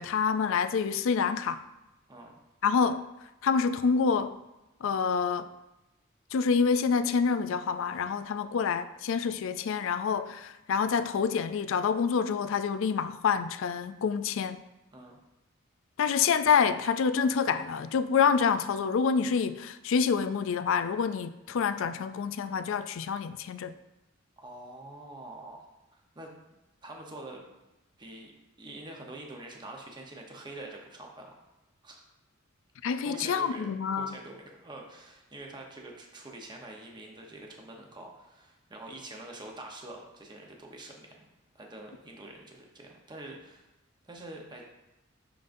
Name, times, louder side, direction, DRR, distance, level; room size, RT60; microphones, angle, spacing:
voice 1, 0.0-1.6 2.6-3.0 3.4-4.3 4.8-5.5 6.3-14.6 16.0-23.7 32.8-34.1, left 6 dB, 65° left, 0.4 m, -27 dB
voice 2, 24.4-26.3 26.8-27.5 28.0-28.3 28.6-31.3 31.8-32.0 33.0-41.3 41.5-43.7 44.0-44.7, right 2 dB, 20° right, 0.9 m, -45 dB
11.0 x 3.8 x 2.6 m
head